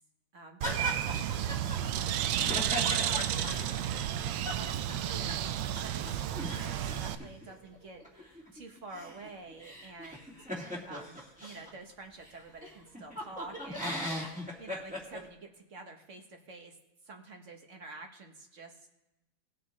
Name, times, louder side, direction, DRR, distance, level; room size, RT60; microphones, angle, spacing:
voice 1, 0.3-4.0 4.5-10.4 10.8-14.1 14.6-16.8 17.0-18.9, right 3 dB, 45° right, 3 dB, 1.2 m, -48 dB
sound 1, 0.6-5.5 5.8-5.9 6.1-11.7 12.3-12.4 12.6-15.2, equal, 5° right, 1.8 m, -39 dB
Bird, 0.6-7.2, right 11 dB, 80° right, 1.4 m, -32 dB
19.0 x 7.3 x 3.1 m, 0.97 s
omnidirectional pair, 2.2 m